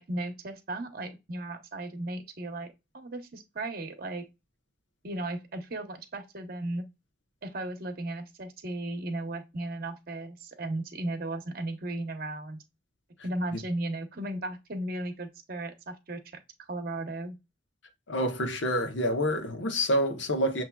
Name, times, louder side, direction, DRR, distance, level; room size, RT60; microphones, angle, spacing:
voice 1, 0.0-4.2 5.0-6.8 7.4-12.6 13.2-16.2 16.7-17.4, right 1 dB, 55° right, 0.9 m, -35 dB
voice 2, 18.1-20.6, equal, 80° left, 1.0 m, -27 dB
7.1 x 2.9 x 2.3 m
head